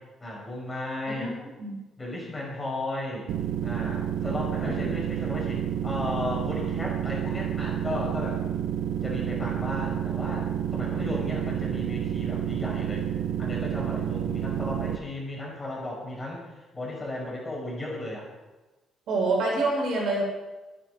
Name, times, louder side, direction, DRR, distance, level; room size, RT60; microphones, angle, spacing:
voice 1, 0.2-1.3 2.0-3.3 3.6-8.4 9.0-13.1 13.4-16.4 16.7-18.3, left 1 dB, 15° left, -3 dB, 5.9 m, -35 dB
sound 1, 3.3-15.0, right 9 dB, 80° right, 1.0 m, -29 dB
voice 2, 19.1-20.2, right 2 dB, 55° right, -2 dB, 6.8 m, -28 dB
26.5 x 10.0 x 5.1 m, 1.1 s
cardioid pair, 170°, 0 cm